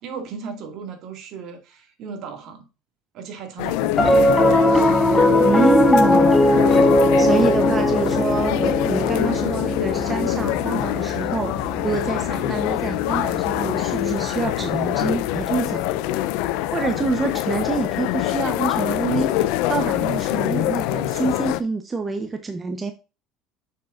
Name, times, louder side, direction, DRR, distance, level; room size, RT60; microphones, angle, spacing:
voice 1, 0.0-2.7 3.1-4.2, right 5 dB, 60° right, 2.0 m, -36 dB
sound 1, 3.6-21.6, left 14 dB, 75° left, 0.5 m, -24 dB
sound 2, 4.0-7.0, left 1 dB, 30° left, 1.5 m, -30 dB
Piano, 4.0-14.5, left 1 dB, 10° left, 0.7 m, -20 dB
voice 2, 5.4-6.3 7.2-16.0 16.7-22.9, right 4 dB, 20° right, 0.8 m, -26 dB
6.8 x 6.1 x 2.5 m
supercardioid pair, 105°, 0 cm